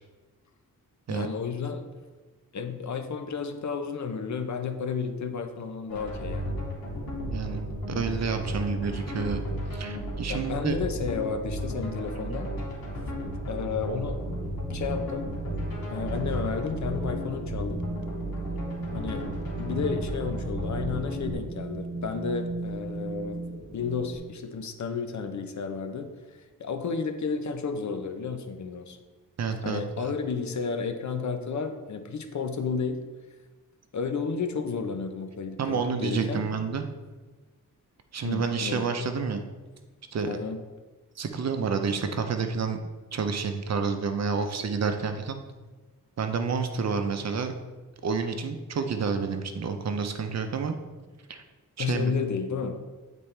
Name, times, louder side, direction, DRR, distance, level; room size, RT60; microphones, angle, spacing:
voice 1, 1.1-1.9 2.5-6.6 10.3-12.5 13.5-14.4 14.7-15.3 15.9-17.8 18.9-19.3 19.6-23.4 23.7-29.0 29.6-33.0 33.9-36.4 38.2-38.9 40.3-40.6 51.8-52.8, left 5 dB, 55° left, 7 dB, 0.8 m, -32 dB
sound 1, 5.9-21.3, equal, 85° left, 2.0 m, -34 dB
voice 2, 7.2-9.4 9.7-10.7 12.3-12.4 29.4-29.8 35.6-36.9 38.1-39.4 40.1-40.4 41.2-42.8 43.1-45.4 46.2-47.5 48.0-50.8 51.3-51.4 51.8-52.1, right 5 dB, 50° right, 7 dB, 0.7 m, -29 dB
Wind, 14.2-24.2, right 2 dB, 35° right, 1.0 m, -37 dB
8.7 x 4.2 x 3.3 m, 1.3 s
wide cardioid pair, 95°, 34 cm